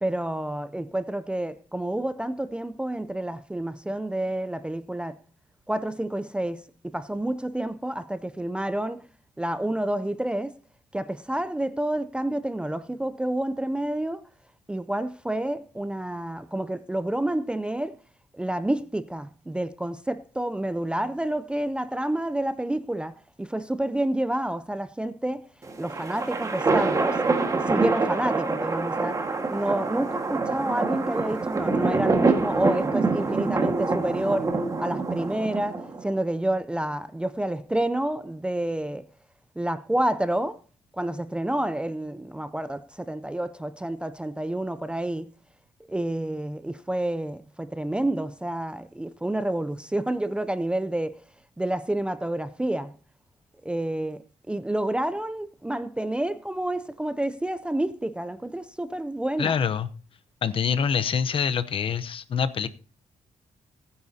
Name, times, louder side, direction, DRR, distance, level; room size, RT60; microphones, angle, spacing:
voice 1, 0.0-5.2 5.7-9.0 9.4-10.5 10.9-14.2 14.7-18.0 18.3-25.5 25.8-27.2 27.7-29.2 29.5-34.5 34.8-39.0 39.6-40.6 41.0-45.3 45.9-51.2 51.6-52.9 53.6-59.5, right 1 dB, 10° right, 0.4 m, -29 dB
sound 1, 25.6-36.1, right 3 dB, 30° right, 1.6 m, -26 dB
voice 2, 59.4-59.9 60.4-62.7, left 7 dB, 50° left, 0.8 m, -25 dB
19.5 x 9.6 x 2.8 m
cardioid pair, 115°, 12 cm